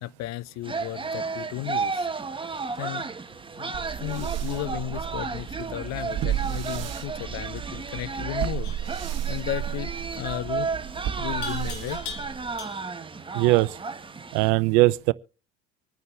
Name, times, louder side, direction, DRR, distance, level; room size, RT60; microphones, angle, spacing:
voice 1, 0.0-2.1 2.8-3.1 3.6-8.7 9.3-10.7 11.2-12.0, left 16 dB, 50° left, 0.6 m, -34 dB
sound 1, 0.6-14.5, right 4 dB, 15° right, 1.3 m, -33 dB
sound 2, 3.7-12.7, right 11 dB, 45° right, 1.4 m, -33 dB
Livestock farm animals working animals, 8.6-9.0 11.4-13.1, left 7 dB, 75° left, 2.9 m, -40 dB
voice 2, 13.3-13.7 14.3-15.1, right 21 dB, 60° right, 0.7 m, -20 dB
25.0 x 9.5 x 3.2 m
hypercardioid pair, 70°, 35 cm